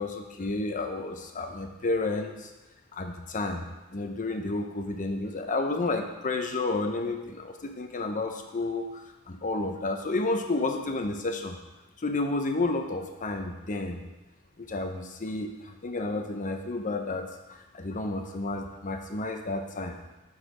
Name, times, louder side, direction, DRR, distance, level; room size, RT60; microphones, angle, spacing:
voice 1, 0.0-2.5 2.9-3.6 3.9-8.9 9.3-11.6 12.0-14.0 14.6-17.2 17.5-20.0, left 2 dB, 35° left, 5 dB, 0.7 m, -31 dB
8.0 x 4.1 x 4.9 m, 1.1 s
head